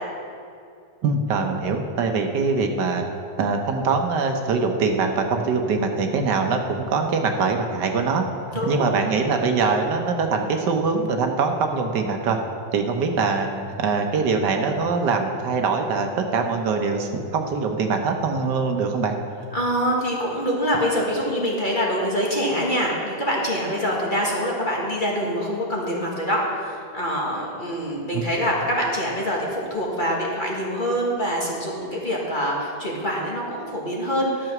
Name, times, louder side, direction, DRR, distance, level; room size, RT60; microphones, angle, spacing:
voice 1, 1.0-3.1 3.4-8.2 8.5-12.4 12.7-19.2 28.1-28.2, right 4 dB, 75° right, 4 dB, 1.4 m, -23 dB
voice 2, 8.5-8.9 19.5-34.5, equal, 30° left, -3 dB, 1.4 m, -25 dB
10.5 x 6.9 x 5.9 m, 2.5 s
omnidirectional pair, 1.9 m